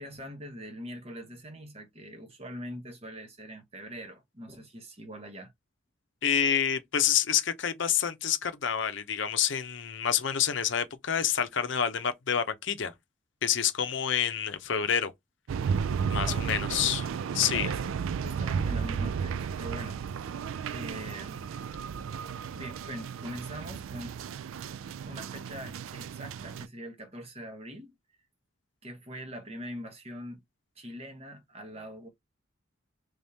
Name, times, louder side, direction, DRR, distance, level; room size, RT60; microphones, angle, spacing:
voice 1, 0.0-5.5 16.2-16.6 17.5-20.3 20.7-21.4 22.5-24.2 25.1-27.9 28.8-30.4 30.8-32.1, equal, 30° right, 1.0 m, -43 dB
voice 2, 6.2-12.9 13.4-15.1 16.1-17.1 17.3-17.7, left 8 dB, 65° left, 0.6 m, -28 dB
sound 1, 15.5-26.7, right 6 dB, 80° right, 0.3 m, -33 dB
3.5 x 3.4 x 2.7 m
head